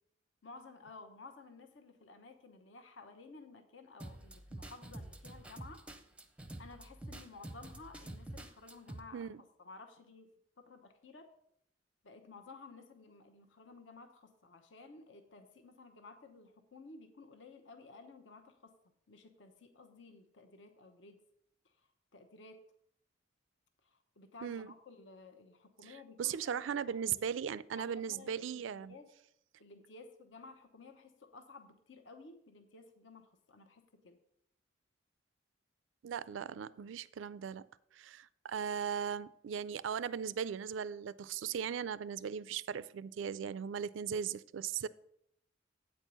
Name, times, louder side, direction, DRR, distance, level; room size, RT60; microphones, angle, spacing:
voice 1, 0.4-5.8 6.6-10.3 10.6-11.3 12.0-18.7 19.1-21.2 21.6-22.6 23.8-27.3 27.7-29.1 29.6-34.2, left 3 dB, 70° left, 0.9 m, -55 dB
sound 1, 4.0-9.0, right 1 dB, 5° right, 0.6 m, -48 dB
voice 2, 24.4-24.7 26.2-28.9 36.0-37.7 37.9-44.9, right 7 dB, 70° right, 0.3 m, -38 dB
8.6 x 4.5 x 6.8 m
head